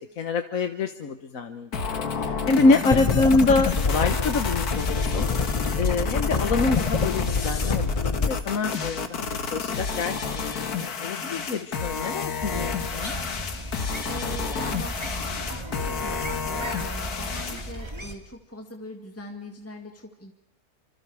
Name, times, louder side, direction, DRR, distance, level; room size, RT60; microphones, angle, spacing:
voice 1, 0.2-9.3 9.5-13.1, left 3 dB, 65° left, 7 dB, 1.5 m, -26 dB
sound 1, 1.7-17.7, left 5 dB, 90° left, 2.1 m, -30 dB
sound 2, 2.9-8.3, left 4 dB, 30° left, 0.7 m, -26 dB
sound 3, 12.4-18.2, right 1 dB, 20° right, 2.5 m, -35 dB
voice 2, 13.7-20.3, left 1 dB, 10° left, 3 dB, 1.9 m, -41 dB
28.0 x 26.0 x 4.9 m, 0.92 s
omnidirectional pair, 1.6 m